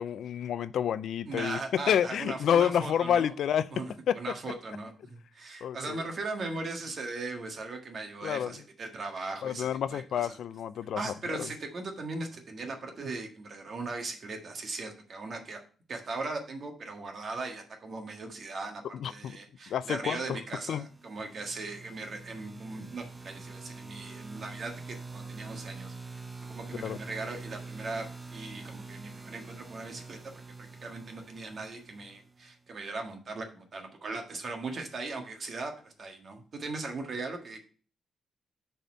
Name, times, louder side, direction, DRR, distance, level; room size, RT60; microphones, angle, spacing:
voice 1, 0.0-1.6 1.9-3.7 4.1-4.2 5.6-6.0 8.2-8.5 9.4-11.5 18.9-19.4 19.7-20.4 20.7-20.8 26.8-27.0, left 9 dB, 80° left, 0.4 m, -29 dB
voice 2, 1.3-3.3 3.7-10.4 10.9-15.6 15.9-37.6, right 3 dB, 45° right, 1.6 m, -39 dB
sound 1, 20.8-32.5, right 3 dB, 20° right, 0.6 m, -45 dB
6.7 x 4.3 x 6.2 m
cardioid pair, 125°, 0 cm